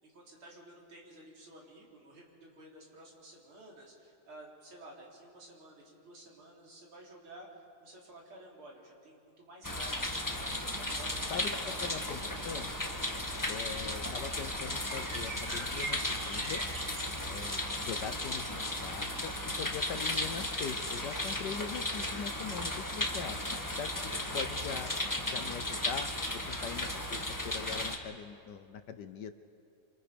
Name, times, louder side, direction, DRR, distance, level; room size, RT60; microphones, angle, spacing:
voice 1, 0.0-7.5 7.8-11.9 12.4-12.6 23.9-24.3, right 1 dB, 85° right, -2 dB, 4.6 m, -53 dB
sound 1, 9.6-28.0, left 1 dB, 10° left, 1.2 m, -35 dB
voice 2, 11.3-12.7 13.5-16.6 17.2-23.4 23.8-23.9 24.3-24.9 25.3-26.1 26.5-29.3, left 7 dB, 65° left, 10 dB, 1.2 m, -42 dB
sound 2, 12.8-19.4, right 2 dB, 50° right, 3.0 m, -47 dB
27.0 x 26.5 x 5.1 m, 2.5 s
omnidirectional pair, 2.3 m